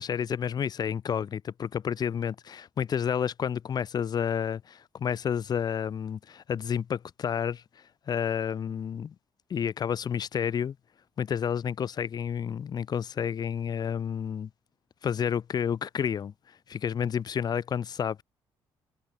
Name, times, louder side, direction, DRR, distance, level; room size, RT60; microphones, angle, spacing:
voice 1, 0.0-7.6 8.1-9.1 9.5-10.8 11.2-14.5 15.0-16.3 16.7-18.2, left 8 dB, 45° left, 0.6 m, -30 dB
cardioid pair, 85°, 10 cm